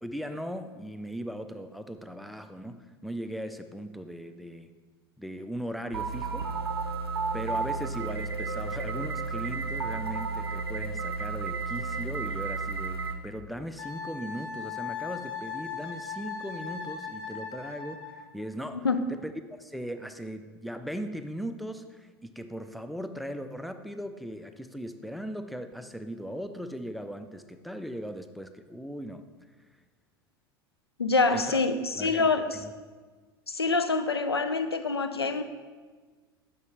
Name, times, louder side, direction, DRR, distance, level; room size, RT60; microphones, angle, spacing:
voice 1, 0.0-4.7 5.2-6.5 6.8-6.9 7.3-19.3 19.6-29.2 31.3-31.6 32.0-32.3 32.5-32.7, equal, ahead, 9 dB, 0.4 m, -38 dB
sound 1, 5.9-13.1, right 4 dB, 80° right, 0.5 m, -32 dB
Wind instrument woodwind instrument, 13.8-18.2, left 6 dB, 70° left, 0.9 m, -38 dB
voice 2, 31.0-32.6 33.5-35.4, left 4 dB, 90° left, 9 dB, 0.4 m, -26 dB
6.7 x 5.8 x 3.3 m, 1.4 s
figure-of-eight pair, 80°, 13 cm